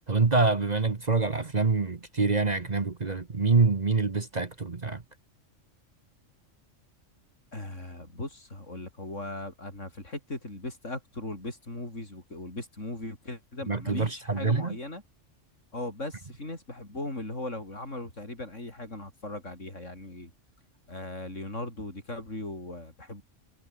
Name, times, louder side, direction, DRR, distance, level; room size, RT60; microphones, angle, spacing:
voice 1, 0.1-5.0 13.7-14.8, right 4 dB, 35° right, 1.3 m, -26 dB
voice 2, 7.5-15.0 15.7-20.3 20.9-23.2, left 2 dB, 70° left, 6.8 m, -38 dB
omnidirectional pair, 1.3 m